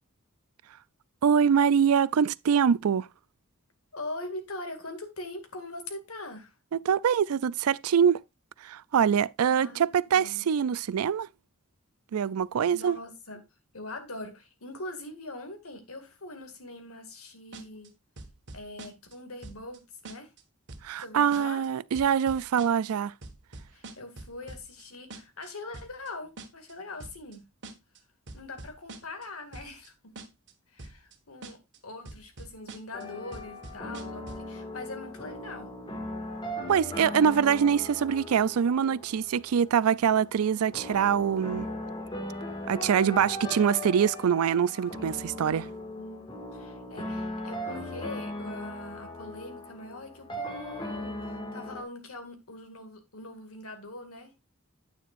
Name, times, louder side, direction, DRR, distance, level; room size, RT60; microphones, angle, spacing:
voice 1, 1.2-3.1 6.7-8.2 8.6-11.3 12.1-13.0 20.8-23.1 36.7-41.7 42.7-45.7, right 7 dB, 90° right, 0.4 m, -24 dB
voice 2, 3.9-6.5 9.4-10.5 12.7-13.4 13.7-17.9 18.5-20.3 21.0-21.6 23.7-27.5 28.3-30.1 30.7-35.7 45.9-54.5, left 2 dB, 80° left, 2.2 m, -42 dB
sound 1, 17.5-17.9 18.2-19.1 19.4-19.8 20.0-20.4 20.7-21.0 21.3-21.7 21.9-22.9 23.2-24.8 25.1-25.5 25.7-26.1 26.4-26.7 27.0-27.4 27.6-28.0 28.3-29.2 29.5-29.9 30.2-30.5 30.8-31.1 31.4-31.8 32.0-33.0 33.3-34.5, right 2 dB, 55° right, 1.5 m, -44 dB
sound 2, 32.9-51.8, left 1 dB, 25° left, 2.0 m, -38 dB
9.3 x 9.1 x 2.5 m
head